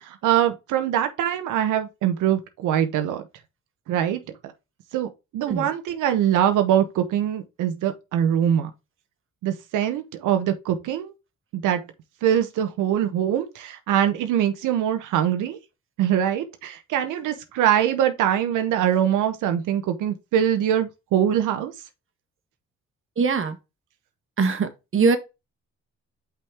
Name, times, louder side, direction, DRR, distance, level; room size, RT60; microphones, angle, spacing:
voice 1, 0.0-3.2 3.9-4.2 4.9-8.7 9.4-11.1 11.5-11.8 12.2-15.6 16.0-21.7, right 10 dB, 90° right, 0.9 m, -23 dB
voice 2, 23.2-23.6 24.4-25.2, right 5 dB, 45° right, 1.3 m, -22 dB
5.6 x 5.1 x 3.4 m
cardioid pair, 90°, 30 cm